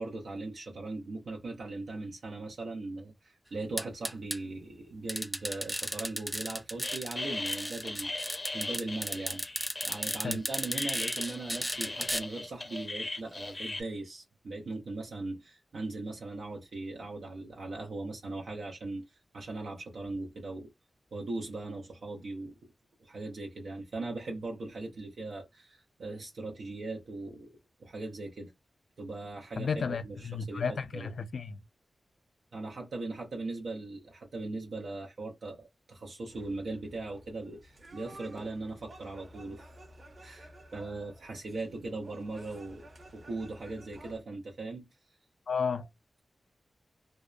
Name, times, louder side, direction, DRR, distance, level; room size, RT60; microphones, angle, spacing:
voice 1, 0.0-9.4 9.8-19.1 19.3-20.7 21.1-22.5 23.0-27.5 27.8-28.5 29.0-30.2 30.5-31.1 32.5-39.7 40.2-44.9, right 2 dB, 85° right, 0.6 m, -39 dB
sound 1, 3.8-4.4 5.1-7.1 7.5-12.2, equal, 5° right, 0.3 m, -35 dB
sound 2, 6.8-13.8, left 2 dB, 45° left, 0.7 m, -38 dB
voice 2, 29.6-31.6 45.5-45.9, left 5 dB, 80° left, 0.4 m, -33 dB
sound 3, 36.3-44.2, right 1 dB, 50° right, 0.9 m, -53 dB
2.7 x 2.1 x 2.2 m
cardioid pair, 45°, 0 cm